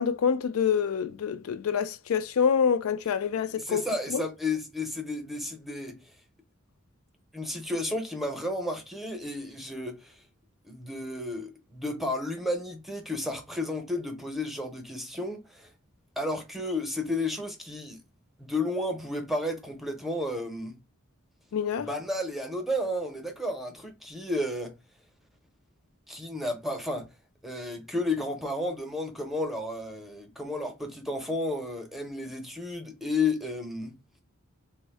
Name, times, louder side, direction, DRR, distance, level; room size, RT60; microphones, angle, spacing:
voice 1, 0.0-3.8 4.1-4.2 21.5-21.9, left 7 dB, 80° left, 0.4 m, -26 dB
voice 2, 3.6-6.1 7.3-10.2 10.6-15.7 16.2-18.0 18.4-20.8 21.8-24.7 26.1-27.1 27.4-33.9, left 2 dB, ahead, 0.7 m, -32 dB
3.5 x 2.1 x 3.3 m
head